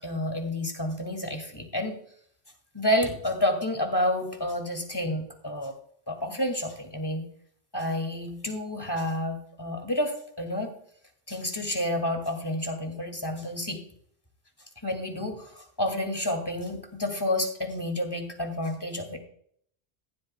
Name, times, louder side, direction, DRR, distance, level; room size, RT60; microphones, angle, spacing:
voice 1, 0.0-2.0 2.7-5.7 6.1-7.2 7.7-10.7 11.3-13.8 14.8-19.2, left 1 dB, 20° left, 4 dB, 2.2 m, -29 dB
15.0 x 12.0 x 2.2 m, 0.64 s
omnidirectional pair, 1.1 m